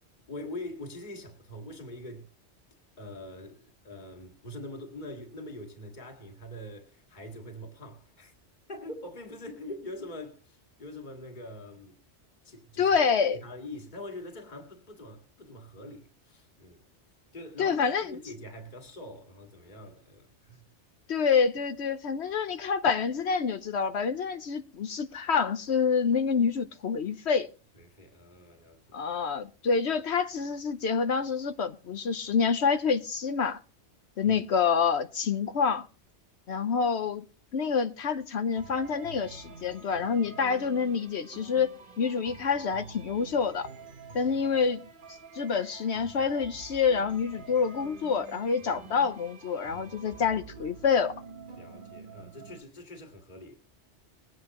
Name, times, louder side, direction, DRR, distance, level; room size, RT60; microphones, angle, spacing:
voice 1, 0.3-2.3 3.0-8.3 8.7-11.9 12.4-13.0 13.4-16.8 17.3-20.6 27.8-28.8 34.2-34.4 50.1-50.2 51.6-53.6, left 1 dB, 40° left, 2.1 m, -43 dB
voice 2, 12.8-13.4 17.6-18.2 21.1-27.5 28.9-33.6 34.2-35.9 36.5-37.2 37.5-43.7 44.1-44.8 45.3-51.1, left 6 dB, 70° left, 1.1 m, -27 dB
sound 1, 38.5-52.6, right 4 dB, 50° right, 1.2 m, -48 dB
21.0 x 9.6 x 2.9 m
omnidirectional pair, 1.2 m